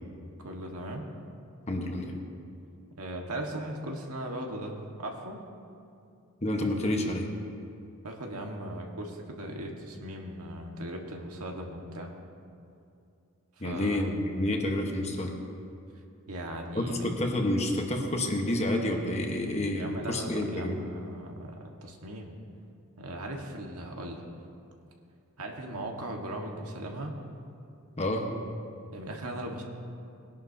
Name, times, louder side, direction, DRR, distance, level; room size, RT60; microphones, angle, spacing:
voice 1, 0.4-1.0 3.0-5.4 8.0-12.1 13.6-14.1 16.3-17.1 19.7-22.4 23.0-24.3 25.4-27.1 28.9-29.6, right 1 dB, 85° right, 1 dB, 1.6 m, -38 dB
voice 2, 1.7-2.1 6.4-7.3 13.6-15.3 16.7-20.8 28.0-28.4, left 1 dB, 30° left, 2 dB, 1.2 m, -29 dB
20.5 x 11.0 x 2.8 m, 2.6 s
head